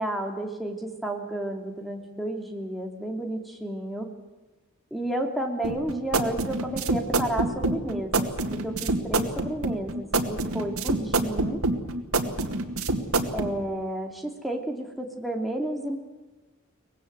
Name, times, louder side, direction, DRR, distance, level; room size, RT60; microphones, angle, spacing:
voice 1, 0.0-4.1 4.9-11.6 13.3-16.0, right 1 dB, ahead, 2 dB, 2.7 m, -32 dB
sound 1, 5.6-13.5, right 2 dB, 90° right, 2.1 m, -26 dB
24.0 x 19.5 x 8.0 m, 1.2 s
head